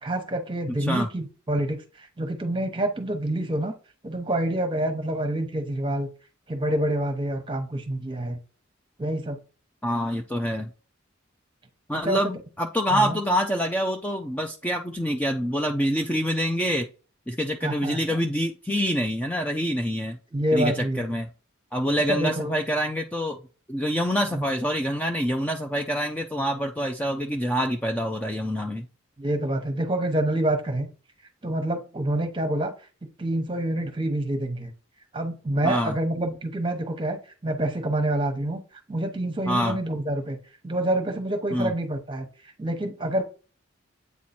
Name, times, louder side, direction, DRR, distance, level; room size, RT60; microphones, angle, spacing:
voice 1, 0.0-3.7 4.0-6.1 6.5-8.4 9.0-9.4 12.0-12.2 12.9-13.2 17.6-18.2 20.3-21.1 22.1-22.6 24.3-24.4 29.2-30.9 31.4-32.7 33.2-34.7 35.1-38.6 38.9-40.4 40.6-43.2, right 1 dB, 25° right, 1.0 m, -27 dB
voice 2, 9.8-10.7 11.9-16.9 17.3-20.2 20.5-21.3 21.7-23.4 23.7-28.9 35.6-36.0 39.5-39.8 41.5-41.7, equal, 5° left, 0.4 m, -26 dB
8.4 x 3.0 x 4.2 m
head